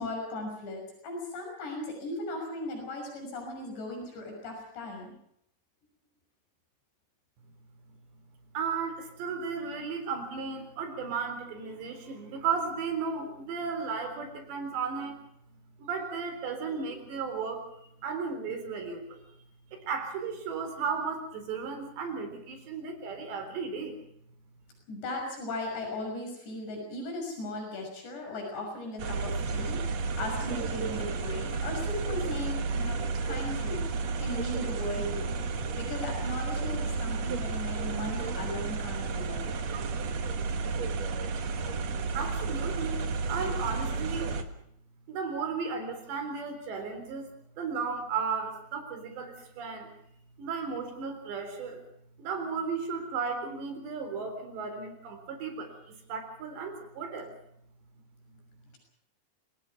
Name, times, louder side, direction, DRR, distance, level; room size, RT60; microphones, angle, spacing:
voice 1, 0.0-5.1 24.9-29.8 30.2-33.8 34.2-35.4 35.7-39.5, left 1 dB, 85° left, 2 dB, 8.5 m, -37 dB
voice 2, 8.5-15.2 15.8-19.2 19.7-24.0 42.1-44.4 45.1-47.3 47.6-49.9 50.4-51.8 52.2-57.3, right 5 dB, 85° right, 7 dB, 6.1 m, -35 dB
sound 1, 29.0-44.4, right 4 dB, 55° right, 2.2 m, -32 dB
26.5 x 19.5 x 5.9 m, 0.72 s
omnidirectional pair, 4.8 m